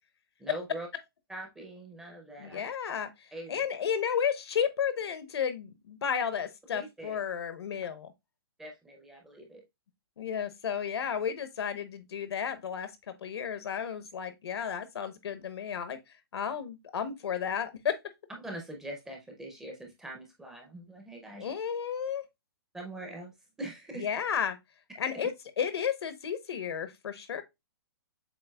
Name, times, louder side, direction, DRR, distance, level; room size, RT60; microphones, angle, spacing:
voice 1, 0.4-0.9 1.3-2.7 3.3-3.7 6.7-7.2 8.6-9.6 18.4-21.5 22.7-23.3 23.6-24.1, right 1 dB, 5° right, 0.5 m, -43 dB
voice 2, 2.4-3.1 3.5-8.1 10.2-16.0 16.3-18.0 21.4-22.2 24.0-24.6 25.0-25.3 25.6-27.4, left 7 dB, 85° left, 0.9 m, -32 dB
7.3 x 2.5 x 2.2 m
hypercardioid pair, 170°, 13 cm